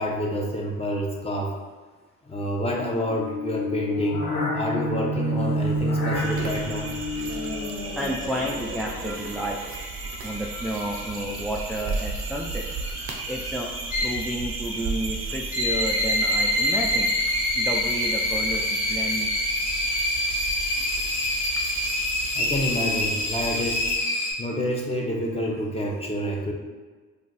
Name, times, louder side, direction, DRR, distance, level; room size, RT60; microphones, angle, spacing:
voice 1, 0.0-1.6 2.3-4.2 4.5-6.9 22.3-23.9 24.4-26.5, equal, 20° left, -2 dB, 0.8 m, -28 dB
sound 1, 3.1-9.5, equal, 90° left, 0.6 m, -29 dB
sound 2, 6.1-24.0, right 4 dB, 40° right, 0.6 m, -34 dB
voice 2, 7.9-9.7 10.2-12.6 13.3-13.7 14.0-17.1 17.5-19.3, right 1 dB, ahead, -3 dB, 0.3 m, -31 dB
sound 3, 8.0-24.3, left 1 dB, 65° left, 0.9 m, -28 dB
2.4 x 2.3 x 3.9 m, 1.4 s
hypercardioid pair, 45°, 32 cm